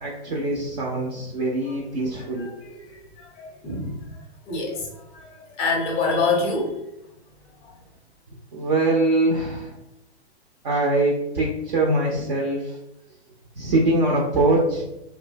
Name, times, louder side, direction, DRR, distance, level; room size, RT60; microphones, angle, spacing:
voice 1, 0.0-2.8 8.5-9.7 10.6-12.8 13.6-14.8, right 2 dB, 40° right, -2 dB, 0.5 m, -23 dB
voice 2, 3.2-4.0 4.5-4.9 5.1-5.2 5.6-6.7, left 3 dB, 20° left, -1 dB, 0.6 m, -25 dB
2.5 x 2.2 x 2.6 m, 0.86 s
hypercardioid pair, 130°, 34 cm